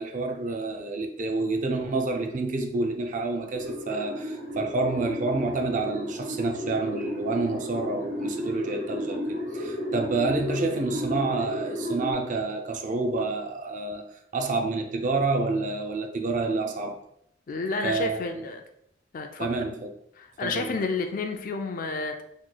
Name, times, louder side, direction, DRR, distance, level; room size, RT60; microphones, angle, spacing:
voice 1, 0.0-14.0 14.3-17.0 17.8-18.5 19.4-19.9 20.4-20.8, right 3 dB, 45° right, 0.4 m, -28 dB
sound 1, 3.5-12.1, left 1 dB, 75° right, 1.4 m, -33 dB
voice 2, 17.5-18.6 19.1-19.5 20.2-22.2, left 3 dB, 50° left, 0.4 m, -30 dB
3.0 x 2.3 x 3.8 m
head